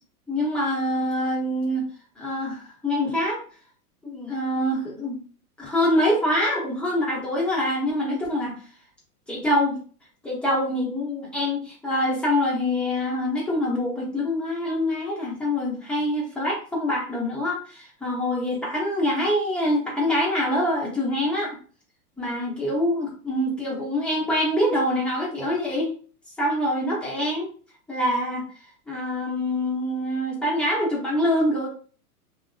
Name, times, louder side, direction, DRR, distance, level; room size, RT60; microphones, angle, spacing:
voice 1, 0.3-1.8 2.2-3.4 4.0-5.2 5.6-8.6 9.3-9.8 10.2-21.6 22.2-25.9 26.4-27.5 27.9-28.5 28.9-31.7, left 1 dB, ahead, -6 dB, 0.7 m, -25 dB
2.6 x 2.1 x 2.4 m, 0.41 s
hypercardioid pair, 120°, 47 cm